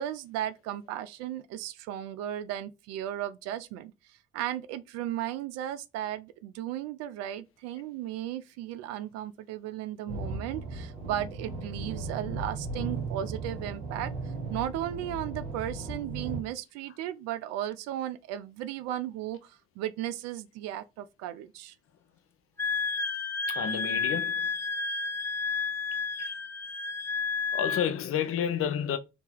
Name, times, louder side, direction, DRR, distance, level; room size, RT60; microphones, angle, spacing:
voice 1, 0.0-3.9 4.3-14.1 14.5-21.7, right 12 dB, 60° right, 0.4 m, -35 dB
sound 1, 10.1-16.4, right 3 dB, 75° right, 0.9 m, -36 dB
Wind instrument woodwind instrument, 22.6-27.9, left 5 dB, 10° left, 0.3 m, -31 dB
voice 2, 23.5-24.5 26.2-26.4 27.5-29.0, left 8 dB, 45° left, 0.6 m, -30 dB
2.9 x 2.8 x 3.4 m
figure-of-eight pair, 40°, 30 cm